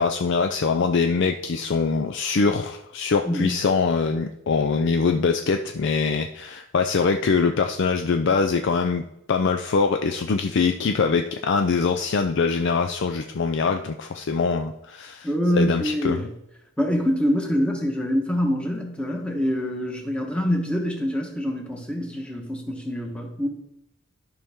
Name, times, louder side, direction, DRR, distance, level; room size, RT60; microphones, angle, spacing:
voice 1, 0.0-9.0 9.3-15.3 15.5-16.3, left 4 dB, 55° left, 5 dB, 0.4 m, -23 dB
voice 2, 3.2-3.6 15.2-16.3 16.8-23.5, equal, 5° left, 1 dB, 1.2 m, -25 dB
11.5 x 5.6 x 3.6 m, 0.83 s
head